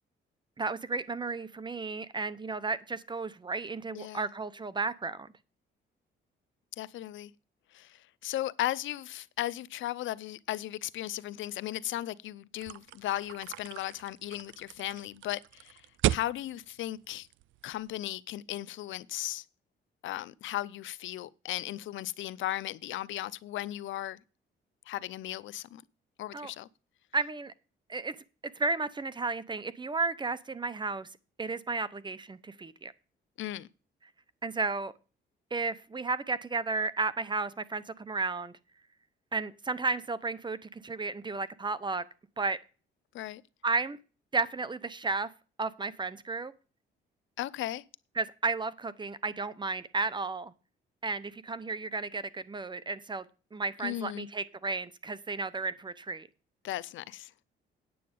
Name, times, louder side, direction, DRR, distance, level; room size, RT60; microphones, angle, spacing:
voice 1, 0.6-5.3 26.3-26.5 27.1-27.5 27.9-28.2 28.4-31.1 31.4-32.9 34.4-34.9 35.5-38.6 39.3-42.0 42.4-42.6 43.6-44.0 44.3-45.3 45.6-46.5 48.2-50.5 51.0-53.2 53.5-56.3, right 4 dB, 25° right, 0.8 m, -33 dB
voice 2, 3.9-4.3 6.8-7.3 7.7-15.8 16.1-17.3 17.6-19.4 20.0-24.2 24.9-25.8 26.2-26.7 33.4-33.7 43.1-43.4 47.4-47.8 53.8-54.3 56.6-57.3, left 14 dB, 75° left, 0.6 m, -36 dB
sound 1, 12.6-17.9, right 14 dB, 80° right, 0.4 m, -36 dB
9.5 x 7.5 x 5.3 m
cardioid pair, 90°, 20 cm